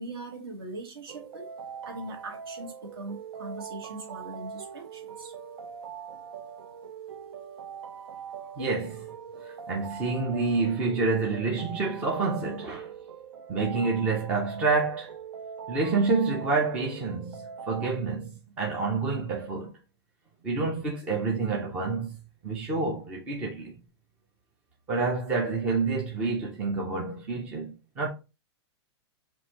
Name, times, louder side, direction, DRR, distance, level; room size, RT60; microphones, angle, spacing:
voice 1, 0.0-1.5 1.8-5.3 8.6-8.7, right 2 dB, 55° right, 1.5 m, -40 dB
sound 1, 1.1-17.9, right 7 dB, 80° right, 0.5 m, -42 dB
voice 2, 8.6-9.0 9.4-12.9 13.5-15.2 15.7-19.8 20.4-22.2 22.4-23.7 24.9-28.1, right 3 dB, 10° right, 0.4 m, -28 dB
5.9 x 2.6 x 2.8 m
supercardioid pair, 175°, 15 cm